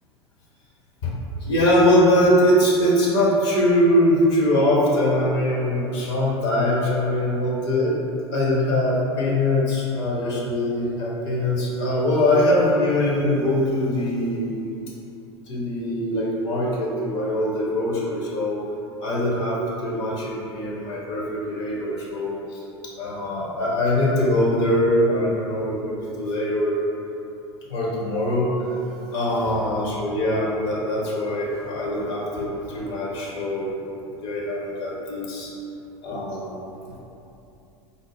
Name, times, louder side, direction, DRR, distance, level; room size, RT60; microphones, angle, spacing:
voice 1, 1.4-8.0 8.3-14.6 15.5-18.6 19.0-22.6 23.0-26.8 27.7-28.8 29.1-33.8 34.2-35.5 36.0-37.0, left 1 dB, 65° left, -4 dB, 1.0 m, -22 dB
4.0 x 2.0 x 3.3 m, 2.8 s
hypercardioid pair, 85°, 15 cm